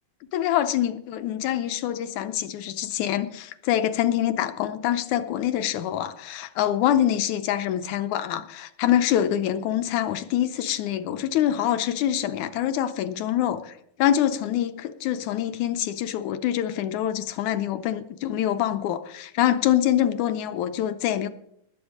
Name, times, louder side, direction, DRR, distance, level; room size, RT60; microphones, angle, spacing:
voice 1, 0.3-13.7 14.0-21.3, left 11 dB, 75° left, 1.9 m, -25 dB
20.0 x 7.9 x 5.0 m
omnidirectional pair, 3.9 m